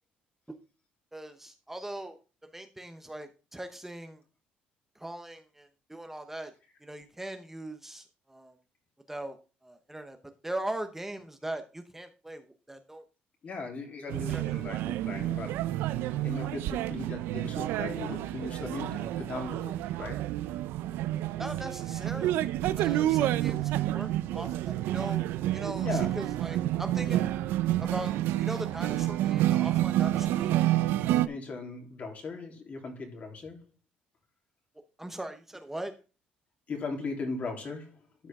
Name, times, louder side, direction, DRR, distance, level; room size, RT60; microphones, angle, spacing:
voice 1, 1.1-2.2 2.5-4.2 4.9-6.5 6.8-8.6 9.1-10.2 10.4-13.0 14.1-14.6 21.4-27.3 27.8-30.6 35.0-35.9, right 1 dB, 10° right, 0.9 m, -40 dB
voice 2, 13.4-15.7 16.2-20.3 25.8-26.1 31.3-33.6 36.7-38.3, left 3 dB, 45° left, 3.1 m, -38 dB
sound 1, 14.1-31.3, right 14 dB, 80° right, 0.5 m, -29 dB
12.5 x 5.0 x 3.6 m
cardioid pair, 90°, 4 cm